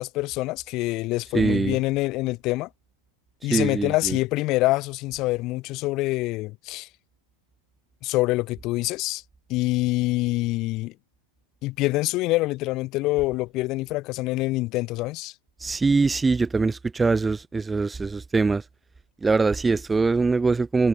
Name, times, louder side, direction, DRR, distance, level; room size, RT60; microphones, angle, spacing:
voice 1, 0.0-2.7 3.4-6.9 8.0-9.2 9.5-10.9 11.6-15.3, left 20 dB, 40° left, 1.7 m, -25 dB
voice 2, 1.3-1.8 3.5-4.2 15.6-18.6 19.2-20.9, right 4 dB, 10° right, 0.5 m, -22 dB
figure-of-eight pair, 90°, 0 cm